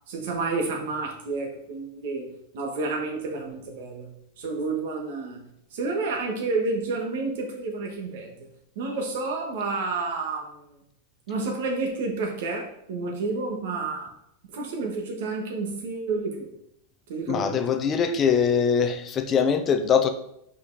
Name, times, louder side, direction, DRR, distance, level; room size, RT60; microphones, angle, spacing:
voice 1, 0.1-2.3 2.5-4.1 4.4-5.4 5.7-8.4 8.7-10.7 11.3-14.1 14.5-16.5 17.1-17.6, right 3 dB, 60° right, 2 dB, 1.5 m, -30 dB
voice 2, 17.3-20.1, left 6 dB, 20° left, 8 dB, 0.5 m, -22 dB
5.4 x 4.7 x 4.0 m, 0.76 s
supercardioid pair, 165°, 0 cm